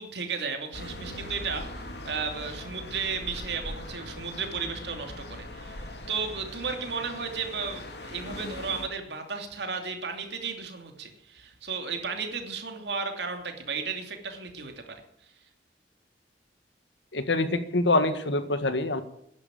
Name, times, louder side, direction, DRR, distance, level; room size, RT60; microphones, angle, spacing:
voice 1, 0.0-15.0, right 5 dB, 70° right, 5 dB, 2.9 m, -34 dB
sound 1, 0.7-8.9, left 1 dB, 65° left, 2.6 m, -40 dB
voice 2, 17.1-19.0, left 2 dB, 90° left, 10 dB, 1.7 m, -25 dB
12.0 x 11.0 x 9.1 m, 0.75 s
head